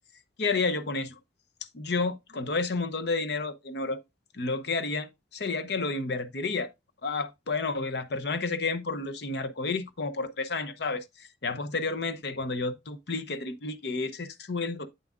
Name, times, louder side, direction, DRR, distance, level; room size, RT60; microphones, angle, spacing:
voice 1, 0.4-1.2 1.7-4.0 4.3-6.7 7.0-14.9, left 3 dB, 65° left, 0.7 m, -31 dB
8.1 x 7.1 x 2.4 m
head